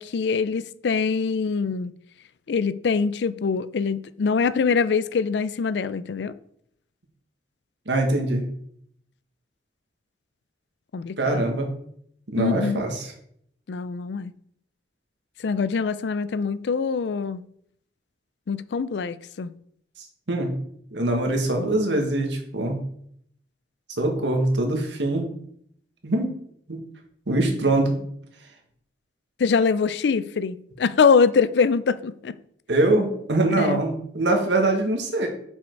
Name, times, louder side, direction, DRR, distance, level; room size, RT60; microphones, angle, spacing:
voice 1, 0.0-1.9 2.5-6.3 10.9-11.4 12.4-12.8 13.7-14.3 15.4-17.4 18.5-19.5 29.4-32.3 33.5-33.8, left 5 dB, 75° left, 0.4 m, -23 dB
voice 2, 7.8-8.4 11.2-11.7 12.3-13.1 20.3-20.5 20.9-22.8 24.0-25.3 26.0-26.3 26.7-26.8 27.3-28.0 32.7-35.3, right 2 dB, 90° right, 1.6 m, -23 dB
7.0 x 5.2 x 4.5 m
head